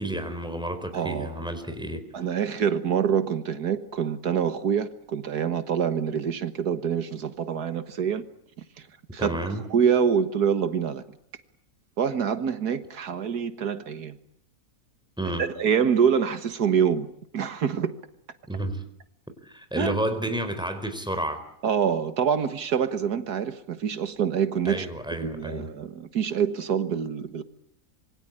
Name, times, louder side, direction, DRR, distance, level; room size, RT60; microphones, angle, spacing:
voice 1, 0.0-2.2 9.2-9.6 15.2-15.5 18.5-18.8 19.4-21.4 24.6-25.7, right 1 dB, 5° right, 4.4 m, -31 dB
voice 2, 0.9-1.4 2.1-8.2 8.8-8.9 9.1-9.4 9.7-11.0 12.0-14.2 15.4-17.1 17.3-18.0 19.8-20.0 21.6-24.9 25.2-27.4, right 7 dB, 80° right, 1.9 m, -26 dB
27.0 x 23.5 x 8.9 m
omnidirectional pair, 1.6 m